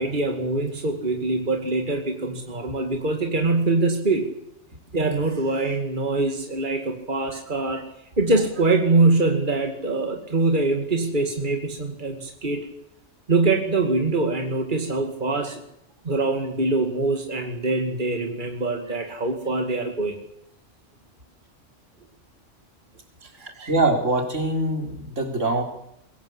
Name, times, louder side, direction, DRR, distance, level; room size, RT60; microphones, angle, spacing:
voice 1, 0.0-4.3 4.9-7.8 8.2-12.7 13.3-15.6 16.0-20.2 23.4-23.7, right 3 dB, 40° right, 4 dB, 2.5 m, -23 dB
voice 2, 23.7-25.6, right 2 dB, 85° right, 3 dB, 4.2 m, -23 dB
22.0 x 17.5 x 8.1 m, 0.76 s
omnidirectional pair, 1.2 m